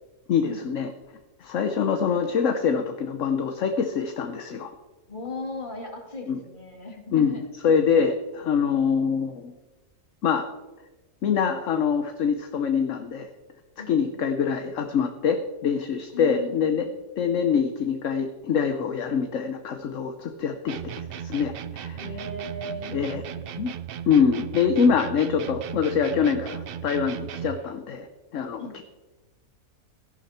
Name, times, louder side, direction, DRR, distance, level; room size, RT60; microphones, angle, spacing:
voice 1, 0.3-0.9 1.4-4.7 6.3-6.4 7.1-9.5 10.2-10.5 11.2-13.3 13.9-16.9 17.2-22.0 22.9-23.2 23.6-23.7 24.1-28.1 28.3-28.8, left 6 dB, 65° left, 7 dB, 1.2 m, -24 dB
voice 2, 5.1-7.4 8.0-8.1 13.8-14.3 16.1-16.9 21.9-23.5 28.6-28.8, left 2 dB, 35° left, 1 dB, 2.6 m, -38 dB
sound 1, 20.7-27.7, right 9 dB, 60° right, 0.6 m, -36 dB
15.5 x 11.0 x 4.3 m, 1.2 s
omnidirectional pair, 1.5 m